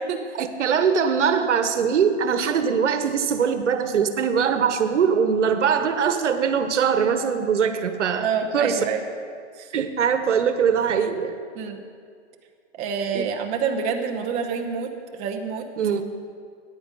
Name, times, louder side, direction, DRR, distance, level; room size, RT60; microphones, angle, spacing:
voice 1, 0.4-8.3 8.5-8.9 9.7-11.4 13.1-13.3 15.8-16.0, right 7 dB, 80° right, 9 dB, 1.2 m, -22 dB
voice 2, 8.2-9.0 9.6-9.7 11.5-11.8 12.7-15.7, right 6 dB, 20° right, 4 dB, 0.8 m, -27 dB
14.0 x 9.9 x 5.4 m, 2.2 s
hypercardioid pair, 155°, 35 cm